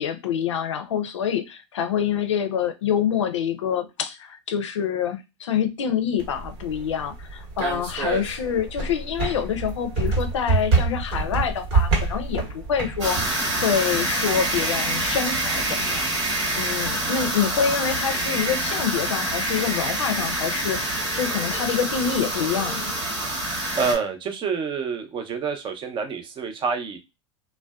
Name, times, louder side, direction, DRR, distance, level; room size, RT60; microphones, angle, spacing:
voice 1, 0.0-16.0 16.6-22.9, left 8 dB, 85° left, 9 dB, 0.5 m, -26 dB
sound 1, 6.2-13.3, right 4 dB, 65° right, 1.0 m, -26 dB
sound 2, 13.0-23.9, right 1 dB, 85° right, 1.1 m, -26 dB
voice 2, 23.8-27.0, right 5 dB, 35° right, 6 dB, 0.6 m, -27 dB
2.5 x 2.1 x 2.2 m, 0.24 s
hypercardioid pair, 95°, 15 cm